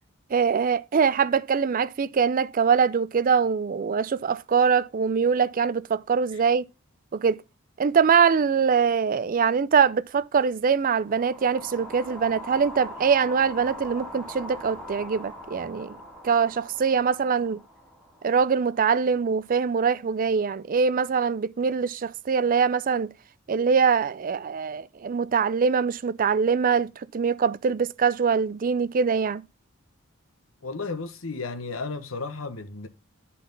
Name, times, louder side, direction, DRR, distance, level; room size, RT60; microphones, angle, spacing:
voice 1, 0.3-6.6 7.1-7.4 7.8-16.0 16.2-17.6 18.2-23.1 23.5-29.4, right 6 dB, 45° right, 0.4 m, -23 dB
sound 1, 11.0-19.3, left 1 dB, 5° left, 2.5 m, -42 dB
voice 2, 30.6-32.9, left 3 dB, 85° left, 1.2 m, -33 dB
11.0 x 4.1 x 5.3 m
head